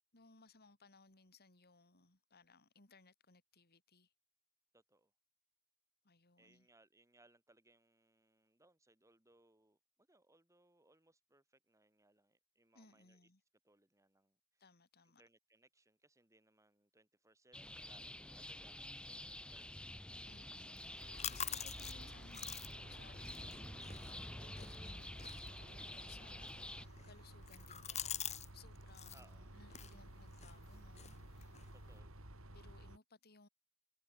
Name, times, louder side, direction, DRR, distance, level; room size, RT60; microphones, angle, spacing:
voice 1, 0.1-4.1 6.0-6.7 12.7-13.4 14.6-15.2 20.2-25.2 25.6-31.7 32.5-33.5, left 3 dB, 45° left, 3.6 m, -64 dB
voice 2, 4.7-5.1 6.4-13.3 13.6-14.6 15.0-19.9 29.1-29.5 31.7-32.3, right 2 dB, 15° right, 5.4 m, -70 dB
sound 1, 17.5-26.8, left 1 dB, 5° left, 0.6 m, -49 dB
sound 2, 20.8-28.5 28.8-29.2 29.7-32.0, left 9 dB, 30° left, 1.3 m, -48 dB
sound 3, 21.0-33.0, right 1 dB, 65° right, 4.5 m, -55 dB
head